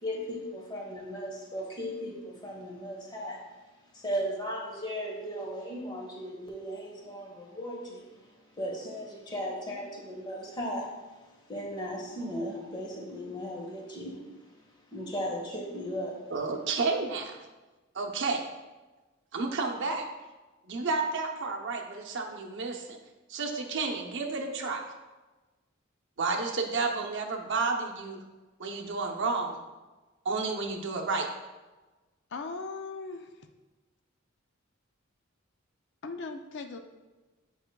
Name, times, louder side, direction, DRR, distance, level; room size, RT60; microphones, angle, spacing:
voice 1, 0.0-3.4 3.9-8.1 8.6-10.9 11.5-14.2 14.9-16.2, equal, 20° left, -1 dB, 1.1 m, -36 dB
voice 2, 16.3-17.3 17.9-18.4 19.3-20.0 20.6-23.0 23.3-24.8 26.2-28.2 28.6-29.6 30.2-31.3, right 3 dB, 60° right, 1 dB, 0.7 m, -31 dB
voice 3, 32.3-33.5 36.0-36.8, left 3 dB, 60° left, 6 dB, 0.4 m, -38 dB
8.8 x 4.9 x 2.2 m, 1.2 s
head